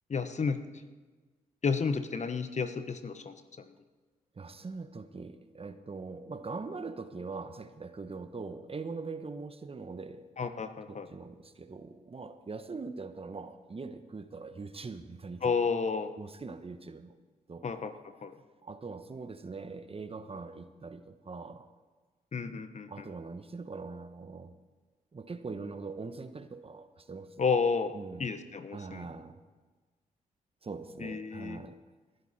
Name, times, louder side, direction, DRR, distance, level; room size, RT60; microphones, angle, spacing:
voice 1, 0.1-0.6 1.6-3.6 10.4-11.1 15.4-16.1 17.6-17.9 18.2-18.3 22.3-23.1 27.4-29.1 31.0-31.6, left 5 dB, 45° left, 10 dB, 1.2 m, -31 dB
voice 2, 4.3-10.3 10.9-15.5 16.2-17.0 17.5-18.0 18.6-21.7 22.9-24.5 25.1-27.5 27.9-28.3 28.7-29.3 30.6-31.8, right 4 dB, 35° right, 10 dB, 1.2 m, -42 dB
19.5 x 11.0 x 4.3 m, 1.3 s
hypercardioid pair, 45°, 16 cm